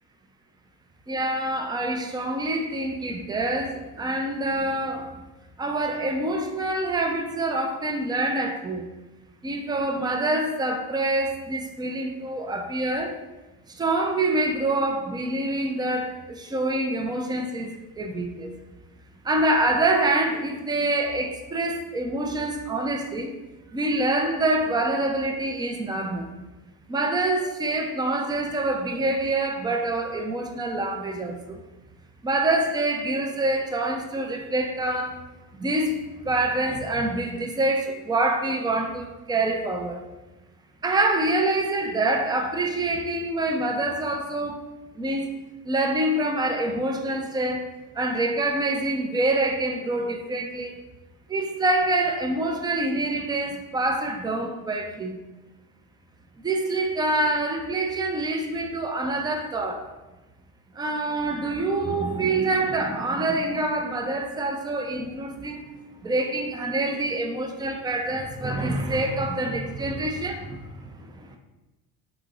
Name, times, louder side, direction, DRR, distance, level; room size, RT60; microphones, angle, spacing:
voice 1, 1.1-5.1 5.6-8.9 9.4-13.2 13.7-18.5 19.2-23.3 23.7-26.3 26.9-31.6 32.2-35.2 35.6-40.0 40.8-44.7 45.0-45.4 45.6-50.8 51.3-55.2 56.4-59.9 60.7-65.6 66.0-71.4, right 2 dB, 10° right, 0.3 m, -26 dB
3.7 x 3.0 x 3.7 m
supercardioid pair, 90°, 46 cm